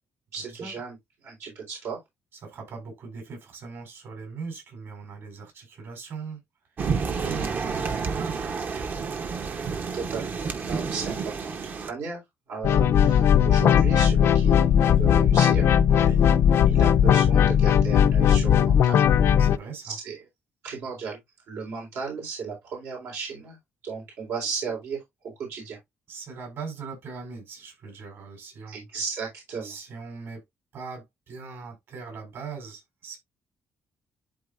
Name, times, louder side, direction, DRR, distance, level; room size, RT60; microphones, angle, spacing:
voice 1, 0.3-1.0 1.2-2.0 7.0-7.5 9.9-10.4 10.6-12.2 12.5-15.7 16.7-19.0 19.8-20.2 20.6-21.2 21.5-23.6 23.8-25.0 25.4-25.8 28.7-29.7, right 5 dB, 80° right, 4.2 m, -35 dB
voice 2, 2.4-6.4 7.1-8.5 15.9-16.3 19.4-20.0 26.1-28.8 29.6-30.4 30.7-33.2, right 5 dB, 60° right, 5.1 m, -40 dB
sound 1, 6.8-11.9, right 5 dB, 40° right, 0.9 m, -30 dB
sound 2, 12.6-19.6, left 9 dB, 65° left, 0.5 m, -18 dB
11.5 x 4.0 x 2.5 m
cardioid pair, 155°, 5 cm